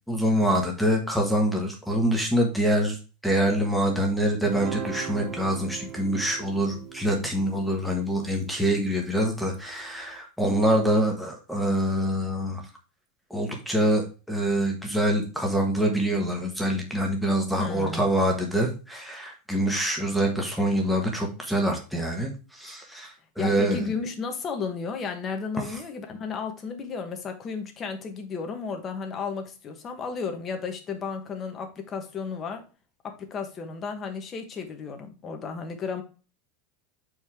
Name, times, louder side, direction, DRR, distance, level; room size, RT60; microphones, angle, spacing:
voice 1, 0.1-3.0 3.2-12.6 13.3-23.9, equal, ahead, 0 dB, 1.3 m, -25 dB
Guitar, 4.4-9.0, right 8 dB, 25° right, 0.7 m, -38 dB
voice 2, 17.6-18.0 23.4-32.6 33.0-36.0, left 5 dB, 20° left, 5 dB, 1.3 m, -33 dB
7.4 x 4.8 x 3.6 m, 0.33 s
supercardioid pair, 170°, 0 cm